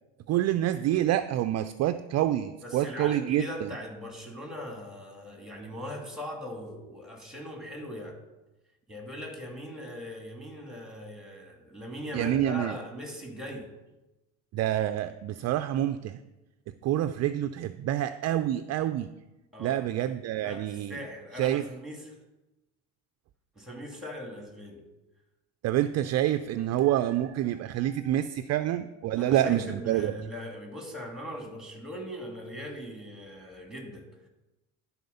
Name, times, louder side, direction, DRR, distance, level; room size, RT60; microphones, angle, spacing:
voice 1, 0.3-3.7 12.1-12.8 14.5-16.2 16.8-19.1 19.6-21.0 21.4-21.6 25.6-30.1, right 12 dB, 45° right, 11 dB, 0.4 m, -27 dB
voice 2, 2.6-8.2 8.9-13.7 19.5-19.8 20.4-22.2 23.5-24.8 29.2-34.0, equal, ahead, 2 dB, 2.6 m, -40 dB
11.5 x 4.3 x 5.5 m, 1.0 s
supercardioid pair, 85°, 38 cm